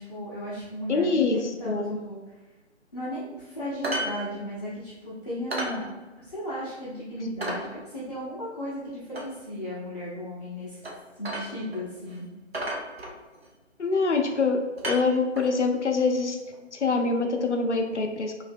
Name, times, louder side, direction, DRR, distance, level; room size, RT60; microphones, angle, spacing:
voice 1, 0.0-2.3 2.9-5.9 6.3-10.8 11.2-12.3, equal, 30° left, -10 dB, 0.8 m, -35 dB
voice 2, 0.9-2.0 13.8-14.6 14.8-16.4 16.7-18.4, left 4 dB, 70° left, 4 dB, 0.6 m, -25 dB
sound 1, 3.8-4.2 4.4-4.5 4.9-5.0 5.5-5.8 6.2-6.3 6.8-6.9 7.4-7.7 9.2-9.3 10.8-11.0 11.3-11.8 12.1-12.2 12.5-13.5 14.2-14.4 14.8-15.6 16.5-16.6, right 1 dB, 55° right, 0.8 m, -33 dB
3.2 x 2.7 x 3.5 m, 1.2 s
figure-of-eight pair, 150°, 36 cm